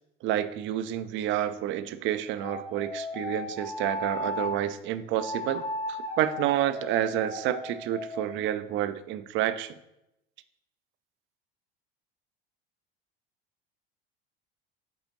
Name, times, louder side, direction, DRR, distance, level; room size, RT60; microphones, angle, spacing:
voice 1, 0.2-5.6 5.9-9.7, right 12 dB, 40° right, 12 dB, 0.5 m, -29 dB
sound 1, 2.4-4.6 5.1-8.5, left 2 dB, 70° left, 1.7 m, -36 dB
7.9 x 4.0 x 3.0 m, 0.86 s
figure-of-eight pair, 70°, 30 cm